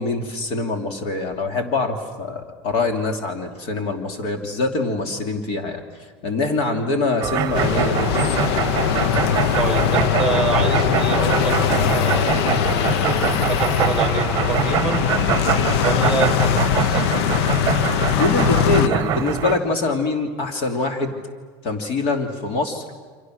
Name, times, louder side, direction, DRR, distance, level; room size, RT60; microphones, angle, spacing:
voice 1, 0.0-5.8 6.2-8.5 18.2-21.1 21.6-22.8, left 3 dB, 50° left, 4 dB, 3.0 m, -24 dB
sound 1, 7.2-19.6, right 10 dB, 30° right, 1.2 m, -24 dB
sound 2, 7.5-18.9, left 11 dB, 85° left, 0.7 m, -21 dB
voice 2, 9.5-15.1 15.8-17.0, right 5 dB, 5° right, 6 dB, 2.2 m, -27 dB
29.5 x 26.5 x 6.5 m, 1.5 s
cardioid pair, 160°, 13 cm